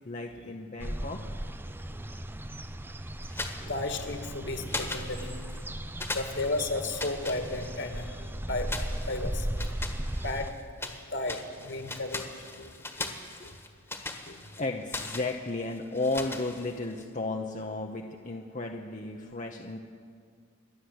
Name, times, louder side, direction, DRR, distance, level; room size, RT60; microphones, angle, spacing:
voice 1, 0.0-1.2 13.2-13.3 14.6-19.8, left 2 dB, 35° left, 2 dB, 0.9 m, -34 dB
sound 1, 0.8-10.5, right 1 dB, 10° right, 0.6 m, -37 dB
sound 2, 3.2-4.3 4.7-5.7 6.0-8.1 8.7-11.0 11.3-17.0, left 2 dB, 10° left, 1.5 m, -39 dB
voice 2, 3.7-5.3 6.1-8.7 9.0-9.5 10.0-10.5 10.8-12.3 12.6-12.7 13.0-13.1 13.4-13.5 14.3-14.4, left 2 dB, 55° left, 6 dB, 2.0 m, -34 dB
28.5 x 11.5 x 8.1 m, 2.1 s
head